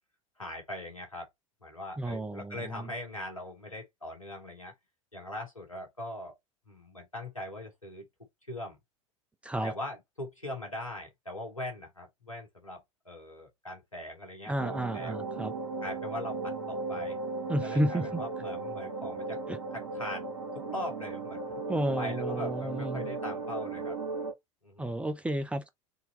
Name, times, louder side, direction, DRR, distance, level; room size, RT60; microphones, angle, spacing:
voice 1, 0.4-1.3 1.6-4.7 5.1-6.3 6.7-8.1 8.5-8.8 9.6-15.2 15.8-17.2 17.6-19.4 19.7-20.3 20.5-21.4 22.0-24.0 24.6-25.0, left 1 dB, 90° left, 1.5 m, -41 dB
voice 2, 2.0-2.9 9.4-9.7 14.5-15.5 17.5-18.2 19.5-19.6 21.7-23.1 24.8-25.7, right 1 dB, 5° right, 0.6 m, -32 dB
sound 1, 14.6-24.3, right 3 dB, 75° right, 1.4 m, -36 dB
3.9 x 2.8 x 4.0 m
figure-of-eight pair, 80°, 17 cm